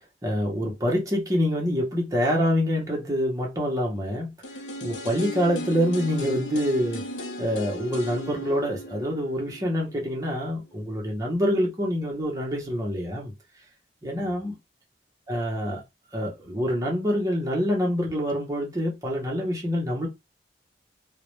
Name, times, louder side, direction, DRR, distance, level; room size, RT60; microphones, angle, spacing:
voice 1, 0.2-4.3 4.8-7.1 7.4-13.3 14.0-14.5 15.3-15.8 16.1-20.1, equal, 20° right, 0.7 m, -26 dB
sound 1, 4.4-10.3 10.6-10.7, left 1 dB, 85° left, 0.6 m, -36 dB
2.3 x 2.1 x 3.0 m
head